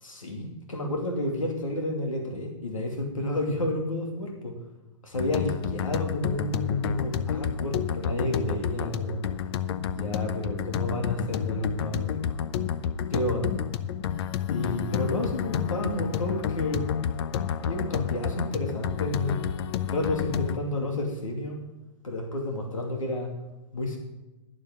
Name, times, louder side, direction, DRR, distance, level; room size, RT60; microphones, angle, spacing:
voice 1, 0.0-4.5 5.0-9.2 9.8-12.2 13.1-13.5 14.5-16.8 17.6-19.5 19.9-21.6 22.0-23.3 23.7-24.0, left 1 dB, 90° left, 1 dB, 2.6 m, -30 dB
sound 1, 5.1-20.6, left 9 dB, 55° left, 0.8 m, -30 dB
12.0 x 11.5 x 3.8 m, 1.1 s
hypercardioid pair, 120°, 17 cm